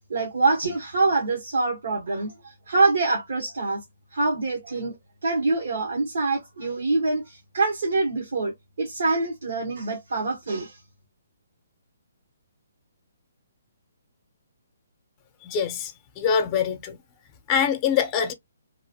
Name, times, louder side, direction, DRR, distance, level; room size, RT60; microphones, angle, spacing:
voice 1, 0.1-3.8 4.1-5.0 5.2-10.8, right 3 dB, 70° right, 1.1 m, -25 dB
voice 2, 15.4-17.0 17.5-18.3, left 7 dB, 30° left, 0.7 m, -24 dB
2.9 x 2.5 x 2.8 m
hypercardioid pair, 140°, 0 cm